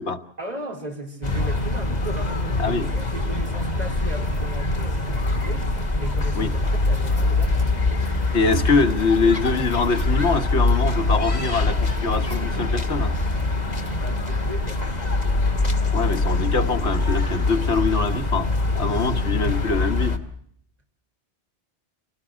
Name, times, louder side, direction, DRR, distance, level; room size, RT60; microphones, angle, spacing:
voice 1, 0.4-7.7 14.0-14.8, right 1 dB, 40° right, 1 dB, 4.2 m, -36 dB
sound 1, 1.2-20.2, left 2 dB, 40° left, 1.9 m, -23 dB
sound 2, 6.8-14.1, equal, 20° right, 5.1 m, -37 dB
voice 2, 8.3-13.1 15.9-18.5 18.7-20.2, left 4 dB, 85° left, 6 dB, 1.7 m, -23 dB
26.0 x 18.0 x 6.3 m, 0.68 s
omnidirectional pair, 1.1 m